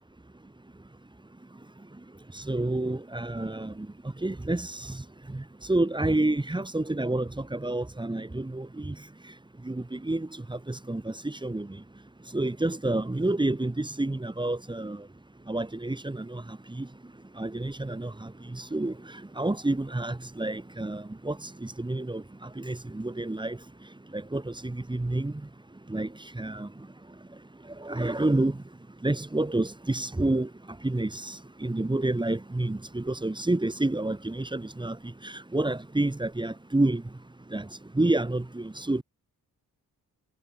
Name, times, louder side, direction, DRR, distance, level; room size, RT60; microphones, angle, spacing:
voice 1, 2.3-3.9 4.2-5.0 5.3-9.0 9.7-11.7 12.3-15.0 15.5-16.9 17.4-18.9 19.4-23.6 24.1-25.3 25.9-26.1 26.4-26.7 27.8-28.6 29.0-30.5 30.8-35.0 35.2-37.0 37.5-37.7 38.0-39.0, right 2 dB, 15° right, 3.6 m, -29 dB
wide cardioid pair, 155°, 35 cm